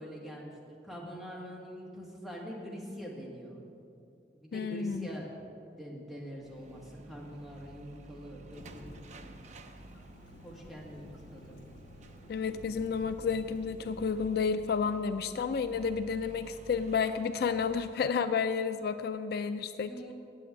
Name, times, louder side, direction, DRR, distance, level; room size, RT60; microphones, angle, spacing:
voice 1, 0.0-3.6 4.3-5.5 5.8-8.9 10.4-11.6 19.8-20.1, equal, ahead, -4 dB, 2.1 m, -44 dB
voice 2, 4.5-5.1 12.3-19.9, left 5 dB, 60° left, 10 dB, 0.3 m, -31 dB
sound 1, 6.4-17.8, right 1 dB, 40° right, 0.6 m, -53 dB
Thunderstorm / Rain, 8.5-14.4, left 1 dB, 80° left, 1.1 m, -52 dB
8.5 x 8.2 x 9.2 m, 2.6 s
head